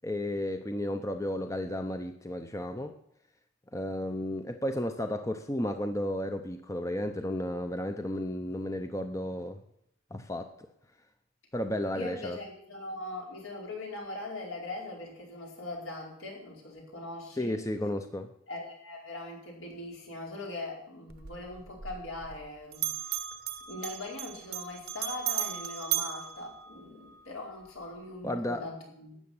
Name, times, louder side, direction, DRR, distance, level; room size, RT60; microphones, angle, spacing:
voice 1, 0.0-3.0 3.7-9.6 10.1-10.5 11.5-12.4 17.4-18.3 28.2-28.6, left 1 dB, 15° left, 7 dB, 0.7 m, -33 dB
voice 2, 11.9-17.6 18.5-22.9 23.7-29.2, left 2 dB, 75° left, -1 dB, 4.8 m, -41 dB
Bell, 21.1-22.5 22.7-27.2, right 12 dB, 45° right, 0.8 m, -36 dB
12.5 x 8.8 x 7.2 m, 0.74 s
head